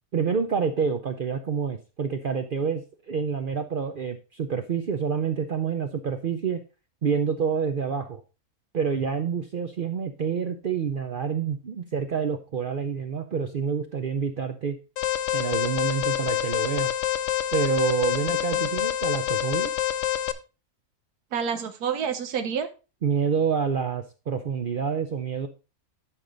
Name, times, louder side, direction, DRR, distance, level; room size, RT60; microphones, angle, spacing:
voice 1, 0.1-6.6 7.0-8.2 8.7-14.8 15.3-16.9 17.5-19.7 23.0-25.5, right 6 dB, 60° right, 7 dB, 0.5 m, -27 dB
Alarm, 15.0-20.3, left 12 dB, 65° left, 0.8 m, -27 dB
voice 2, 21.3-22.7, right 7 dB, 85° right, 8 dB, 1.3 m, -28 dB
9.9 x 5.2 x 3.8 m, 0.31 s
omnidirectional pair, 1.6 m